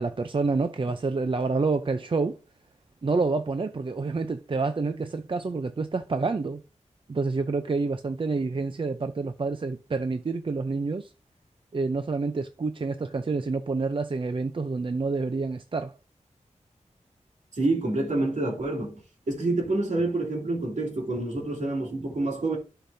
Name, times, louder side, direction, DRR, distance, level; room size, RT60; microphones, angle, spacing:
voice 1, 0.0-2.4 3.0-6.6 7.1-11.1 11.7-15.9, right 3 dB, 45° right, 0.5 m, -28 dB
voice 2, 17.6-19.0 19.3-22.6, right 2 dB, 70° right, 2.9 m, -27 dB
11.5 x 5.9 x 2.7 m
wide cardioid pair, 100°, 13 cm